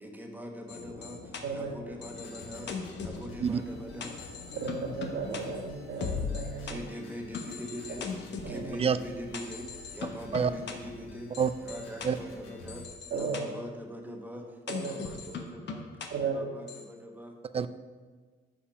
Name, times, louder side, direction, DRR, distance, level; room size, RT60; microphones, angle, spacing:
voice 1, 0.0-4.5 6.6-8.0 8.3-11.3 11.6-12.9 13.1-15.9 16.2-17.4, equal, 10° right, 1 dB, 1.3 m, -42 dB
sound 1, 0.7-6.8 7.3-8.6 9.3-10.7 11.3-12.1 12.7-13.4 14.7-16.1 16.7-16.8, left 5 dB, 60° left, 1.0 m, -40 dB
sound 2, 2.1-12.9, left 4 dB, 90° left, 1.1 m, -49 dB
voice 2, 3.4-3.6 8.8-9.0 10.3-10.5 11.4-11.5 12.0-12.2 17.5-17.7, right 7 dB, 30° right, 13 dB, 0.4 m, -26 dB
voice 3, 4.5-6.8 8.4-8.6 13.1-13.4 14.7-14.9 16.1-16.3, right 5 dB, 65° right, -3 dB, 2.2 m, -34 dB
7.1 x 5.1 x 5.7 m, 1.4 s
cardioid pair, 90°, 20 cm